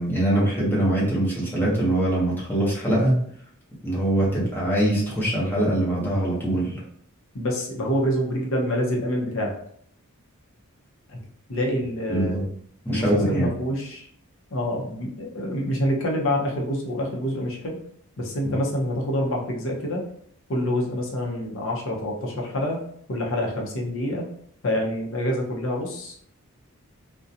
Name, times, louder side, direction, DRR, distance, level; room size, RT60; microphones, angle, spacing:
voice 1, 0.0-3.1 3.8-6.8 12.1-12.5 12.8-13.5 18.4-18.5, right 1 dB, 10° left, -6 dB, 0.8 m, -23 dB
voice 2, 7.3-9.5 11.1-11.2 11.5-12.4 12.9-14.1 14.5-17.8 18.2-20.1 20.5-22.8 23.1-24.2 24.6-26.1, equal, 65° left, 0 dB, 0.7 m, -26 dB
2.4 x 2.2 x 2.7 m, 0.64 s
head